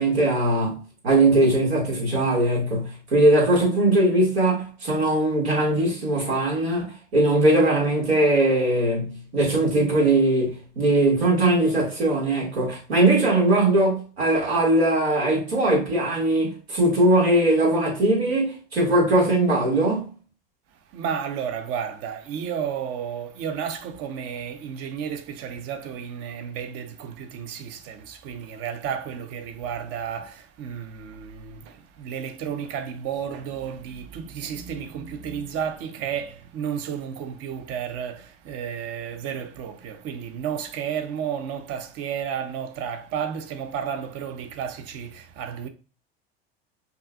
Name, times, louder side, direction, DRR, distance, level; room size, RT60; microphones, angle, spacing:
voice 1, 0.0-20.1, right 1 dB, 90° right, 1.8 m, -20 dB
voice 2, 20.9-45.7, right 8 dB, 50° right, 0.7 m, -32 dB
5.4 x 2.6 x 2.2 m
hypercardioid pair, 85°, 30 cm